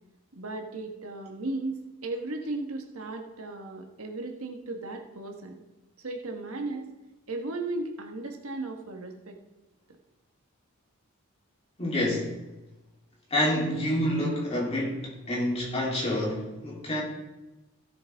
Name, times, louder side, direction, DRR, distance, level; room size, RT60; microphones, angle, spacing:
voice 1, 0.3-5.6 6.0-6.9 7.3-9.4, right 2 dB, 85° right, 3 dB, 1.4 m, -36 dB
voice 2, 11.8-12.3 13.3-17.0, left 1 dB, 30° left, -4 dB, 3.3 m, -28 dB
15.5 x 7.6 x 3.5 m, 1.0 s
head